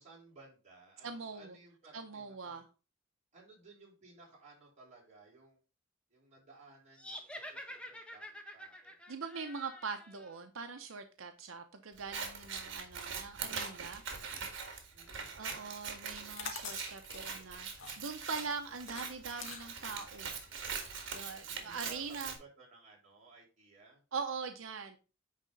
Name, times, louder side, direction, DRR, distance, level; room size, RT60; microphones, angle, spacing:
voice 1, 0.0-2.6 3.3-5.6 6.1-9.0 14.9-15.4 21.4-24.0, right 3 dB, 35° right, -4 dB, 4.3 m, -59 dB
voice 2, 1.0-1.5 1.9-2.6 9.1-14.0 15.3-20.3 21.1-22.3 24.1-25.0, right 5 dB, 85° right, 6 dB, 0.8 m, -42 dB
sound 1, 6.9-10.4, equal, 5° left, 1.0 m, -48 dB
Scissors, 12.0-22.4, right 6 dB, 65° right, 2.0 m, -42 dB
sound 2, 16.2-21.8, left 5 dB, 75° left, 1.6 m, -47 dB
9.7 x 3.7 x 5.2 m, 0.33 s
head